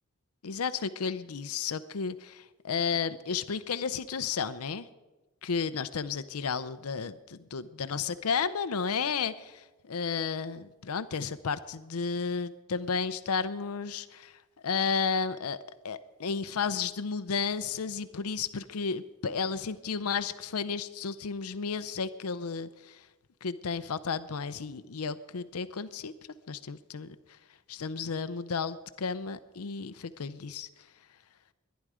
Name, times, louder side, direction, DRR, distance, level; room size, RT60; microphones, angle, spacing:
voice 1, 0.4-4.9 5.4-14.3 14.6-15.6 15.8-23.0 23.4-26.1 26.5-27.1 27.7-30.7, left 5 dB, 85° left, 13 dB, 0.6 m, -33 dB
22.0 x 10.5 x 4.9 m, 1.1 s
head